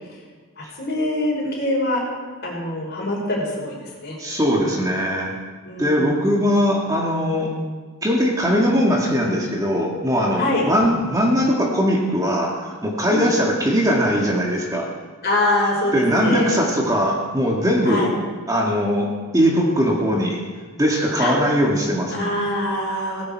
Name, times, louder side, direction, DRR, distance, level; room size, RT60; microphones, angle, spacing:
voice 1, 0.6-2.1 2.4-4.2 5.6-6.2 10.3-10.6 13.1-13.3 15.2-16.5 17.8-18.1 20.1-20.2 21.2-21.3 22.1-23.3, left 1 dB, 50° left, -2 dB, 5.2 m, -24 dB
voice 2, 4.2-5.4 5.8-7.5 8.0-14.9 15.9-18.1 18.5-20.4 20.8-22.3, equal, 15° right, -1 dB, 2.0 m, -20 dB
17.5 x 16.0 x 4.7 m, 1.4 s
head